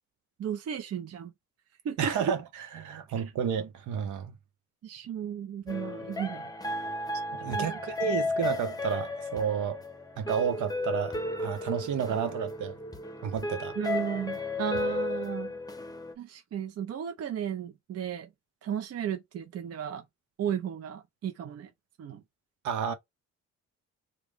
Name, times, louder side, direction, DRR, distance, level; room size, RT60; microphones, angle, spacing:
voice 1, 0.4-1.3 1.8-2.3 3.2-3.3 4.8-6.5 7.5-7.8 8.1-8.2 13.8-15.5 16.2-18.3 18.6-20.0 20.4-21.7 22.0-22.2, right 8 dB, 55° right, 0.7 m, -34 dB
voice 2, 2.0-2.4 2.7-4.3 7.3-9.8 10.2-12.8 13.2-13.7 22.6-22.9, right 8 dB, 75° right, 1.0 m, -31 dB
sound 1, 5.7-16.1, left 2 dB, 15° left, 0.8 m, -34 dB
3.2 x 2.3 x 3.5 m
cardioid pair, 90°, 30 cm